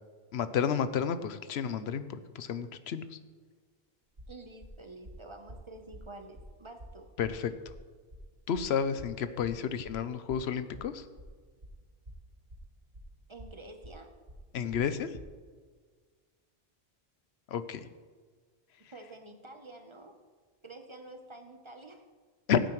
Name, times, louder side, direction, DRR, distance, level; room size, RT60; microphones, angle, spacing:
voice 1, 0.3-2.1 2.3-3.1 7.2-7.5 8.5-11.0 14.5-15.1 17.5-17.9 22.5-22.6, left 7 dB, 85° left, 12 dB, 0.9 m, -31 dB
sound 1, 4.2-15.3, equal, 70° right, 3.0 m, -49 dB
voice 2, 4.3-7.1 13.3-14.1 14.7-14.8 18.9-20.2 20.6-22.0, right 2 dB, 30° right, 5 dB, 0.8 m, -49 dB
16.5 x 8.9 x 3.1 m, 1.6 s
omnidirectional pair, 1.1 m